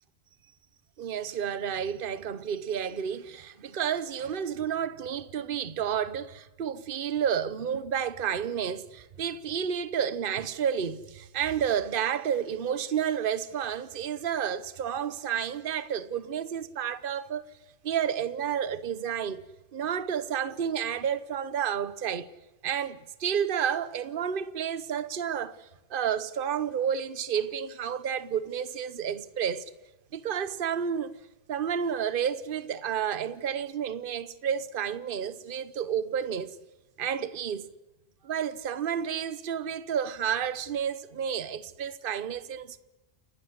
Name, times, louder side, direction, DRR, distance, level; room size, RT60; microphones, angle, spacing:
voice 1, 1.0-17.5 17.8-19.4 19.7-22.3 22.6-29.6 30.1-31.1 31.5-36.6 37.0-37.7 38.2-42.8, right 8 dB, 55° right, 1.1 m, -31 dB
29.0 x 12.5 x 9.6 m
omnidirectional pair, 1.1 m